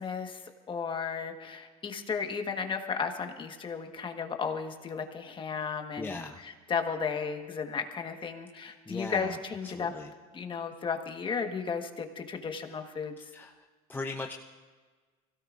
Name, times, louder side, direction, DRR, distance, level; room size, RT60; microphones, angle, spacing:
voice 1, 0.0-9.9 10.3-13.3, left 6 dB, 25° left, 5 dB, 1.4 m, -34 dB
voice 2, 6.0-6.4 8.5-9.4 9.6-10.1 13.3-14.3, left 3 dB, 10° left, 2 dB, 0.7 m, -39 dB
24.0 x 17.0 x 2.5 m, 1.4 s
supercardioid pair, 115°, 18 cm